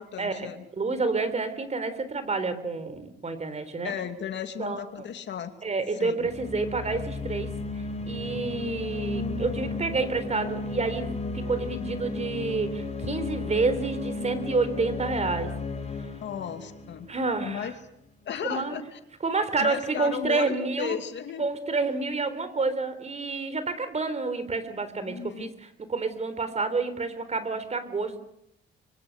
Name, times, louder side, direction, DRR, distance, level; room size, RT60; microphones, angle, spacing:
voice 1, 0.0-0.6 3.8-5.5 5.9-6.3 16.2-17.1 17.4-17.7 18.2-19.0 19.6-21.5 25.0-25.5, left 8 dB, 65° left, 7 dB, 2.6 m, -35 dB
voice 2, 0.8-3.9 4.6-4.8 5.6-7.5 8.1-11.1 11.3-15.5 17.1-17.7 18.4-18.8 19.2-21.0 21.4-28.2, right 3 dB, 35° right, 12 dB, 3.9 m, -29 dB
sound 1, 6.2-17.8, left 3 dB, 35° left, 4.8 m, -34 dB
25.0 x 24.5 x 6.8 m, 0.77 s
cardioid pair, 90°, 20 cm